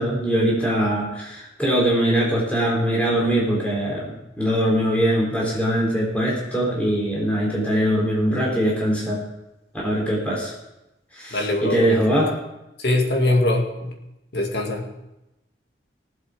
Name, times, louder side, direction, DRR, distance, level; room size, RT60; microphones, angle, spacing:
voice 1, 0.0-9.2 9.8-10.5 11.1-12.3, equal, 10° left, -4 dB, 3.8 m, -22 dB
voice 2, 11.3-12.3 12.8-14.0 14.3-14.9, left 1 dB, 65° left, 1 dB, 2.1 m, -23 dB
18.5 x 7.7 x 5.0 m, 0.93 s
head